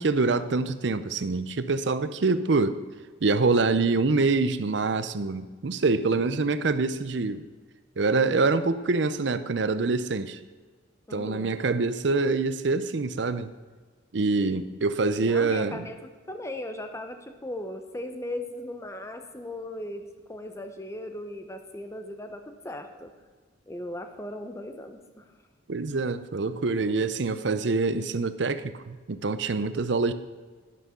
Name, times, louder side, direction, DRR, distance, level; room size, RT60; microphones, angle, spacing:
voice 1, 0.0-2.8 3.2-7.5 8.0-10.4 11.1-13.5 14.1-15.9 25.7-30.1, right 3 dB, 65° right, 12 dB, 0.6 m, -25 dB
voice 2, 11.1-11.5 15.2-16.0 16.3-23.1 23.7-25.2, left 1 dB, 15° left, 6 dB, 0.8 m, -38 dB
11.0 x 11.0 x 3.8 m, 1.4 s
head